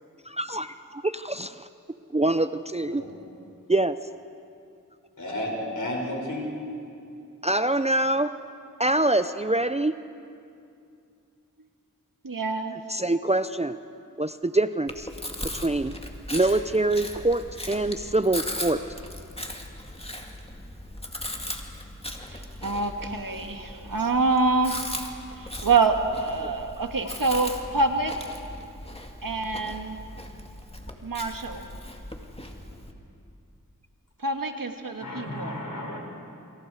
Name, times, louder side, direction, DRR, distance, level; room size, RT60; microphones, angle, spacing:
voice 1, 0.3-1.7 2.1-3.0 3.7-4.0 7.4-8.3 8.8-9.9 12.9-13.8 14.2-15.1 15.5-15.9 16.3-18.8 26.4-26.5, right 2 dB, 20° right, 11 dB, 0.6 m, -25 dB
voice 2, 5.2-6.5 35.0-36.0, left 1 dB, 65° left, -1 dB, 6.4 m, -32 dB
voice 3, 12.2-12.8 22.3-24.9 25.4-28.1 29.2-30.0 31.0-31.6 34.2-35.6, right 3 dB, 75° right, 5 dB, 1.8 m, -26 dB
Chewing mastication, 14.9-32.9, left 1 dB, 15° left, 2.2 m, -38 dB
28.0 x 26.0 x 4.9 m, 2.5 s
wide cardioid pair, 45°, 34 cm